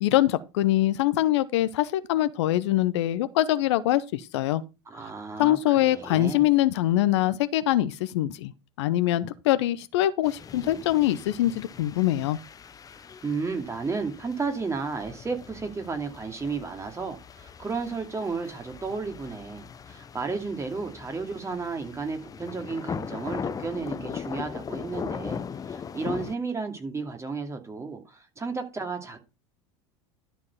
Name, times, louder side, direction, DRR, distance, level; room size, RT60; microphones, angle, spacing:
voice 1, 0.0-4.6 5.4-8.5 8.8-12.4, left 14 dB, 65° left, 0.8 m, -23 dB
voice 2, 4.9-6.4 13.2-25.4 25.7-29.2, right 4 dB, 20° right, 2.6 m, -33 dB
sound 1, 10.2-26.3, left 7 dB, 25° left, 0.7 m, -39 dB
12.5 x 4.6 x 5.5 m
hypercardioid pair, 80°, 15 cm